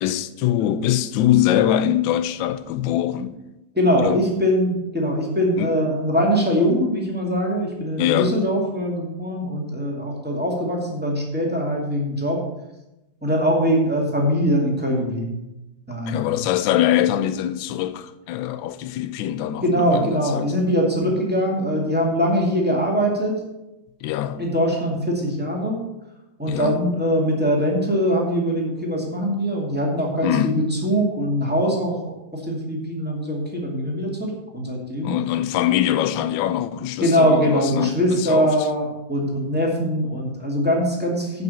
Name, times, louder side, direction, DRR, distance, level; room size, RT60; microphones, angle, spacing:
voice 1, 0.0-3.4 4.0-4.2 5.6-5.7 8.0-8.4 16.1-20.5 21.0-21.1 24.0-24.4 26.5-26.8 30.2-30.6 35.0-38.7, left 11 dB, 70° left, 1.3 m, -23 dB
voice 2, 3.7-12.4 13.2-15.4 15.9-16.4 19.6-23.4 24.4-25.8 26.4-32.0 32.3-35.1 37.0-41.4, equal, 5° right, 2.1 m, -22 dB
9.3 x 6.0 x 7.0 m
omnidirectional pair, 2.3 m